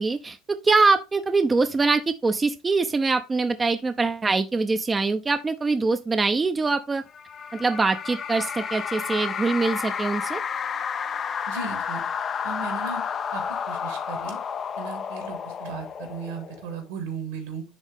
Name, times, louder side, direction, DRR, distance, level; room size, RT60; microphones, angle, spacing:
voice 1, 0.0-7.0 7.5-10.4, right 3 dB, 20° right, 0.7 m, -23 dB
sound 1, 7.1-16.8, left 7 dB, 40° left, 0.6 m, -31 dB
voice 2, 11.5-12.0 12.4-13.0 13.3-14.4 14.8-17.6, right 5 dB, 80° right, 2.9 m, -36 dB
10.5 x 3.6 x 3.6 m
hypercardioid pair, 80°, 0 cm